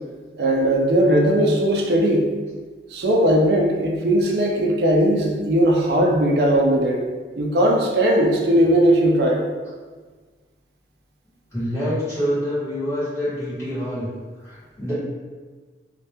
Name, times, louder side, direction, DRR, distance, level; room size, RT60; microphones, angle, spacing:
voice 1, 0.4-2.3 2.9-7.0 7.4-9.4, right 1 dB, 70° right, 0 dB, 0.4 m, -18 dB
voice 2, 11.5-14.1 14.4-14.9, equal, 15° left, -13 dB, 1.3 m, -26 dB
2.6 x 2.2 x 3.4 m, 1.4 s
head